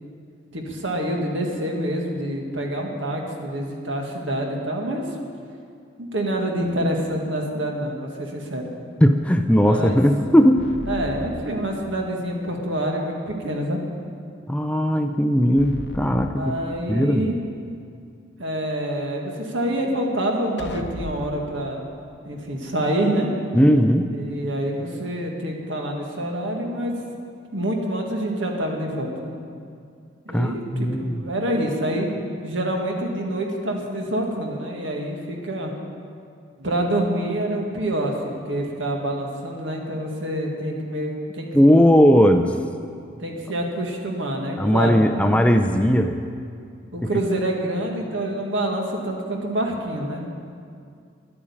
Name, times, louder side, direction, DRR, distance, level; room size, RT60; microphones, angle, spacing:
voice 1, 0.5-5.1 6.0-8.7 9.5-10.0 10.9-13.8 16.3-17.4 18.4-21.9 22.3-23.3 24.1-27.0 27.5-29.3 30.3-32.1 32.4-35.7 36.6-41.6 43.2-45.3 46.9-50.3, right 1 dB, 75° right, 1 dB, 1.8 m, -27 dB
sound 1, 6.5-7.2 10.6-12.3 15.6-17.2 20.6-21.5, left 1 dB, 60° left, 0.7 m, -37 dB
voice 2, 9.0-10.6 14.5-16.5 16.9-17.2 23.5-24.1 30.3-31.2 41.5-42.5 44.6-46.2, equal, 5° left, 6 dB, 0.4 m, -17 dB
11.5 x 8.7 x 8.6 m, 2.4 s
head